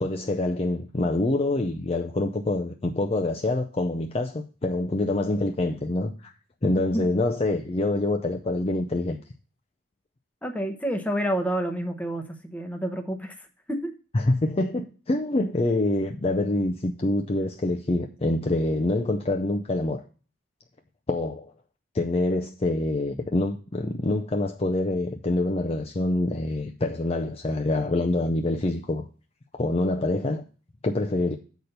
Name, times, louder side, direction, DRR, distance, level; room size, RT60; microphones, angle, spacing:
voice 1, 0.0-6.3 6.6-9.2 14.1-20.0 21.1-21.5 21.9-29.1 29.5-30.4 30.8-31.4, left 2 dB, 30° left, 0.5 m, -26 dB
voice 2, 10.4-13.9, equal, 5° left, 0.9 m, -29 dB
8.0 x 4.3 x 6.6 m
head